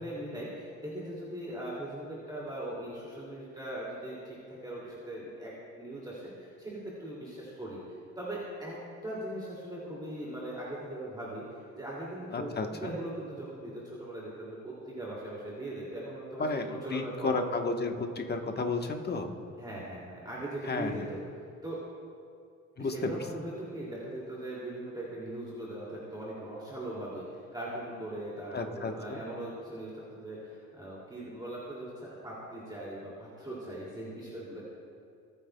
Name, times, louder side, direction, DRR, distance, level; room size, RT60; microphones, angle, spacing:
voice 1, 0.0-7.8 8.2-11.4 11.8-12.5 12.8-17.4 19.6-21.2 21.6-21.8 22.8-34.7, right 1 dB, 15° right, -6 dB, 2.5 m, -40 dB
voice 2, 12.3-13.0 16.4-19.3 20.7-20.9 22.8-23.1 28.5-29.2, left 3 dB, 35° left, 4 dB, 1.1 m, -32 dB
19.0 x 9.3 x 2.2 m, 2.3 s
cardioid pair, 90°, 30 cm